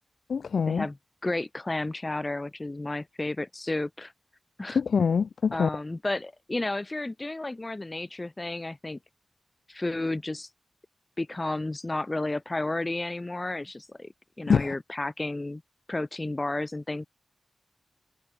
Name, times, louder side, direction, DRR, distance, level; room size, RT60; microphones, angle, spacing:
voice 1, 0.3-0.9 4.7-5.7 14.5-14.7, left 6 dB, 85° left, 0.3 m, -24 dB
voice 2, 1.2-4.1 4.6-4.8 5.5-9.0 9.7-10.5 11.2-14.1 14.4-15.6 15.9-17.1, left 2 dB, 25° left, 0.6 m, -32 dB
wide cardioid pair, 85°, 0 cm